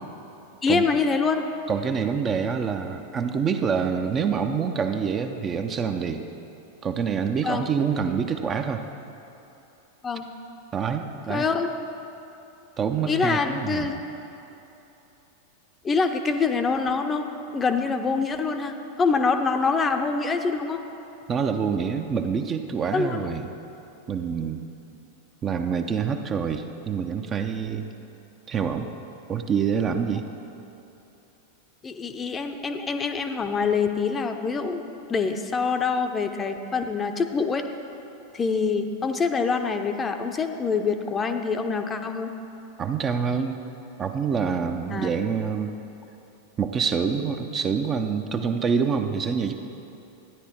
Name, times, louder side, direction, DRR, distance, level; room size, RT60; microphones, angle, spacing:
voice 1, 0.6-1.5 7.4-7.7 10.0-10.3 11.3-11.7 13.0-14.0 15.8-17.3 17.5-20.8 22.9-23.2 31.8-34.8 35.1-37.6 38.3-42.3 44.9-45.1, left 4 dB, 20° left, 7 dB, 0.6 m, -25 dB
voice 2, 1.7-6.2 6.8-8.8 10.7-11.4 12.8-13.9 21.3-23.5 24.1-24.6 25.4-27.9 28.5-28.9 29.3-30.2 42.8-43.6 44.0-45.7 46.6-49.5, right 6 dB, 25° right, 6 dB, 0.5 m, -26 dB
12.5 x 9.9 x 4.4 m, 3.0 s
figure-of-eight pair, 90°, 0 cm